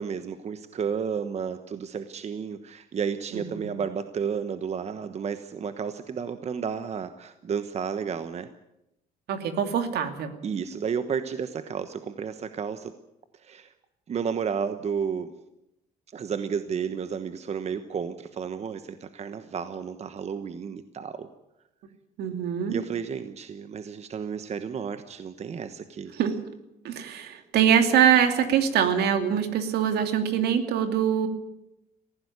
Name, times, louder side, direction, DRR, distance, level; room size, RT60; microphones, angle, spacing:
voice 1, 0.0-8.5 10.4-12.9 13.4-13.7 14.1-15.3 16.1-21.3 22.7-26.1, right 6 dB, 40° right, 10 dB, 1.2 m, -32 dB
voice 2, 3.3-3.7 9.3-10.3 22.2-22.8 26.1-26.4 26.8-31.3, right 8 dB, 70° right, 7 dB, 2.6 m, -23 dB
18.5 x 15.0 x 9.7 m, 0.88 s
cardioid pair, 110°, 17 cm